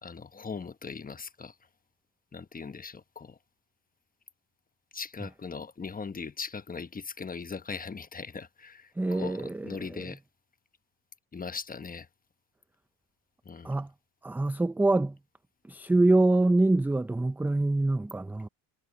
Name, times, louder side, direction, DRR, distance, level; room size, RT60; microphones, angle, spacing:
voice 1, 0.0-1.6 2.3-3.4 4.9-10.2 11.3-12.1 13.4-13.7, left 5 dB, 20° left, 1.1 m, -39 dB
voice 2, 9.0-10.0 13.6-13.9 14.2-15.2 15.7-18.5, right 2 dB, 5° right, 0.3 m, -25 dB
supercardioid pair, 95°, 47 cm